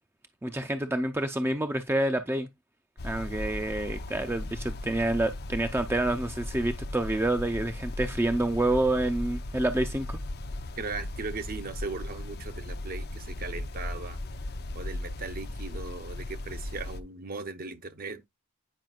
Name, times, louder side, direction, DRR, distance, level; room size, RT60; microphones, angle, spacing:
voice 1, 0.4-2.5 3.0-10.2, right 1 dB, 10° right, 0.5 m, -28 dB
sound 1, 3.0-17.0, left 1 dB, 45° left, 0.6 m, -37 dB
voice 2, 10.8-14.2 14.7-18.2, right 4 dB, 40° right, 0.7 m, -38 dB
9.1 x 5.0 x 2.3 m
head